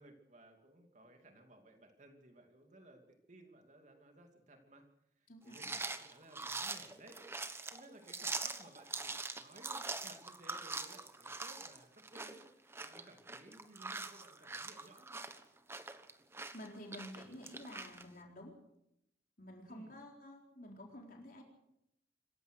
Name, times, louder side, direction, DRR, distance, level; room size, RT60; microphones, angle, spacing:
voice 1, 0.0-4.8 5.2-15.2 19.6-19.9, right 1 dB, 40° right, 4 dB, 2.5 m, -59 dB
voice 2, 5.3-5.7 16.5-18.6 19.4-21.4, left 1 dB, 50° left, 1 dB, 4.1 m, -51 dB
sound 1, 5.5-18.0, right 3 dB, 15° right, 1.2 m, -43 dB
26.0 x 15.5 x 6.5 m, 0.80 s
head